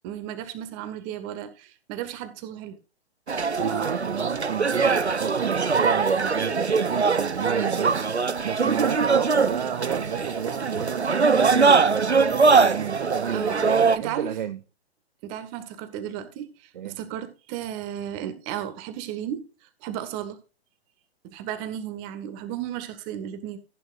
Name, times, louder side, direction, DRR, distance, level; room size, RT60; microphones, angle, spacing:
voice 1, 0.0-2.8 8.6-8.8 13.3-14.3 15.2-19.4 19.8-20.4 21.2-23.6, right 10 dB, 25° right, 1.7 m, -34 dB
sound 1, 3.3-14.0, right 4 dB, 85° right, 0.8 m, -22 dB
voice 2, 3.6-14.6 16.7-17.0, right 9 dB, 45° right, 0.8 m, -32 dB
15.0 x 8.9 x 2.5 m
figure-of-eight pair, 125°, 32 cm